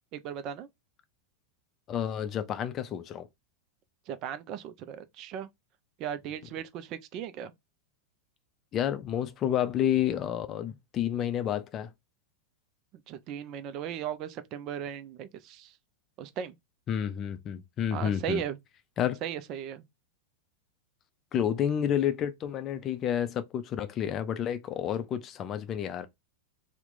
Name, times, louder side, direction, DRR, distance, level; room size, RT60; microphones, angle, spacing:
voice 1, 0.1-0.7 4.1-5.5 6.0-7.5 13.1-15.7 16.2-16.6 17.9-18.6 19.2-19.8, right 9 dB, 40° right, 0.4 m, -37 dB
voice 2, 1.9-3.3 8.7-11.9 16.9-18.4 19.0-19.2 21.3-26.1, left 10 dB, 30° left, 0.4 m, -30 dB
2.9 x 2.1 x 3.7 m
figure-of-eight pair, 90°, 0 cm